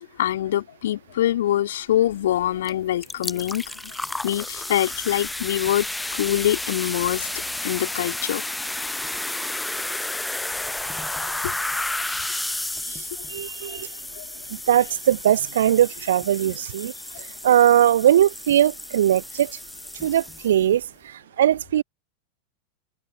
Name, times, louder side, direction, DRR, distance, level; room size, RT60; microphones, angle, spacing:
voice 1, 0.2-4.0 4.2-5.9 6.1-7.3 7.6-8.4 11.4-11.5 12.8-13.0 13.7-13.8 14.2-14.3, left 12 dB, 60° left, 2.7 m, -24 dB
sound 1, 2.6-2.7 3.0-20.8, left 2 dB, 5° left, 0.7 m, -32 dB
voice 2, 13.3-13.9 14.5-16.9 17.2-19.5 20.0-21.8, right 11 dB, 60° right, 0.5 m, -20 dB
figure-of-eight pair, 90°, 0 cm